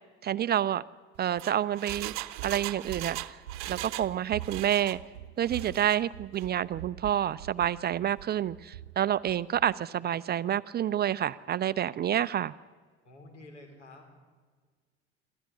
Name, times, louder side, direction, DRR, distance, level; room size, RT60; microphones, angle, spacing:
voice 1, 0.2-0.8 1.2-2.1 2.4-3.4 3.7-5.0 5.4-12.5, right 10 dB, 30° right, 17 dB, 0.5 m, -28 dB
Engine, 1.1-4.1 4.4-5.0 5.4-6.0 6.3-6.4, right 16 dB, 50° right, 1.0 m, -39 dB
Run, 2.8-9.8, right 12 dB, 75° right, 0.6 m, -46 dB
voice 2, 13.0-14.2, left 2 dB, 80° left, 3 dB, 4.5 m, -50 dB
26.5 x 14.0 x 9.5 m, 1.5 s
figure-of-eight pair, 65°, 35 cm